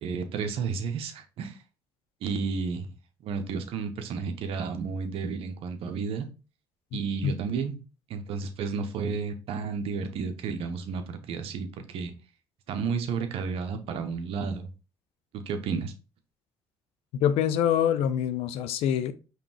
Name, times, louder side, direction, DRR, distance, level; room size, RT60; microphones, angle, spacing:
voice 1, 0.0-1.6 2.2-2.9 3.2-6.3 6.9-7.8 8.1-12.1 12.7-14.7 15.3-15.9, right 5 dB, 70° right, 0.8 m, -32 dB
voice 2, 6.9-7.4 17.1-19.1, left 9 dB, 75° left, 0.5 m, -26 dB
5.2 x 3.2 x 2.9 m
supercardioid pair, 60°, 10 cm